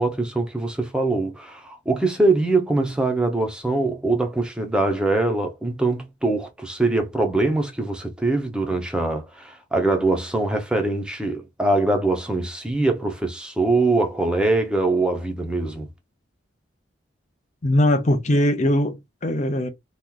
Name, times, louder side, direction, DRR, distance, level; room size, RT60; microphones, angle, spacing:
voice 1, 0.0-15.9, right 2 dB, 5° right, 0.7 m, -23 dB
voice 2, 17.6-19.7, left 1 dB, 35° left, 0.7 m, -20 dB
3.0 x 2.5 x 3.7 m
head